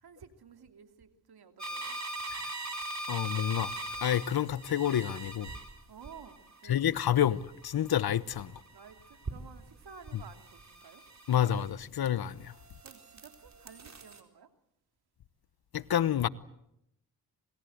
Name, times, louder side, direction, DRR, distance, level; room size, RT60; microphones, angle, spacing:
voice 1, 0.0-2.0 5.9-7.0 8.7-11.0 12.8-14.5, right 6 dB, 70° right, 2.9 m, -53 dB
sound 1, 1.6-12.0 12.4-14.2, right 2 dB, 45° right, 4.2 m, -42 dB
voice 2, 3.1-3.7 4.0-5.5 6.7-8.5 11.3-12.5 15.7-16.3, left 10 dB, 70° left, 1.0 m, -28 dB
27.5 x 21.5 x 8.1 m
cardioid pair, 60°, 39 cm